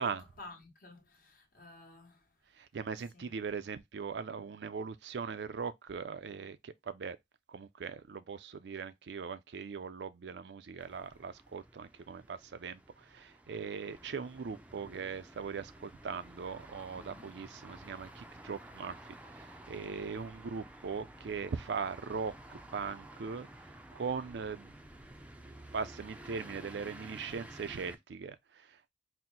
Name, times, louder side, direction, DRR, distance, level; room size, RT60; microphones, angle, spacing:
voice 1, 0.0-2.4 3.1-3.3 16.9-17.4, left 1 dB, 55° left, 1.2 m, -52 dB
voice 2, 2.6-7.2 7.5-23.5 23.9-24.7 25.7-28.9, right 5 dB, 75° right, 0.4 m, -40 dB
sound 1, 10.8-28.0, right 1 dB, 10° right, 0.4 m, -52 dB
4.3 x 2.1 x 3.8 m
head